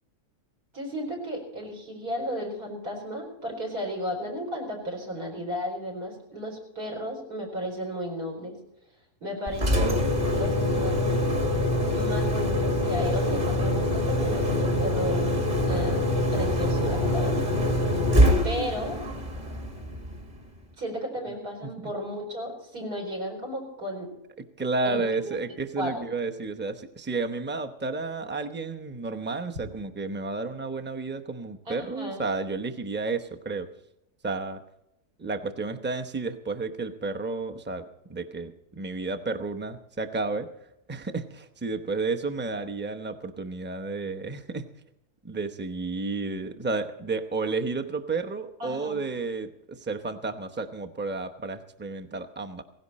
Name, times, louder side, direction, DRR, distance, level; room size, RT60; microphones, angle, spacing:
voice 1, 0.7-8.5 9.2-10.0 10.3-11.1 11.9-16.0 16.3-17.3 18.4-19.0 20.8-24.1 24.8-25.4 25.8-26.0 31.7-32.2 48.6-49.0, equal, 75° right, 2 dB, 5.0 m, -34 dB
Engine, 9.5-20.4, left 1 dB, 25° right, 2.0 m, -24 dB
voice 2, 24.6-33.7 34.2-34.6 35.2-37.8 38.1-40.5 40.9-44.7 45.2-52.6, right 3 dB, 10° right, 6 dB, 0.6 m, -31 dB
17.5 x 16.0 x 4.2 m, 0.83 s
omnidirectional pair, 1.7 m